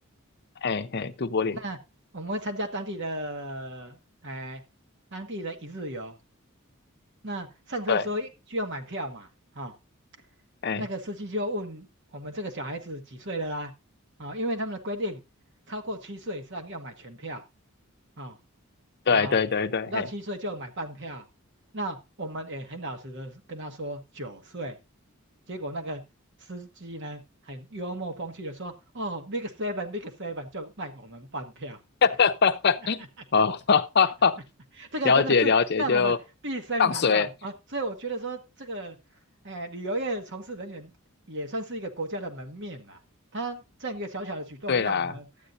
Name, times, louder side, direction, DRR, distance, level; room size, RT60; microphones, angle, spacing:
voice 1, 0.6-1.6 7.9-8.0 10.6-10.8 19.1-20.1 32.0-33.0 33.3-34.4 35.0-36.2 36.8-37.3 44.7-45.1, left 5 dB, 50° left, 0.7 m, -23 dB
voice 2, 2.1-4.6 5.1-6.2 7.2-9.3 9.5-9.7 10.8-13.7 14.2-15.2 15.7-17.4 18.2-18.4 19.1-19.3 19.9-21.2 21.7-24.8 25.5-26.0 26.4-27.2 27.4-31.8 33.3-33.4 34.8-36.1 36.4-39.0 39.4-40.9 41.3-43.0 43.3-45.2, right 1 dB, 55° right, 1.4 m, -34 dB
12.5 x 9.2 x 2.7 m
head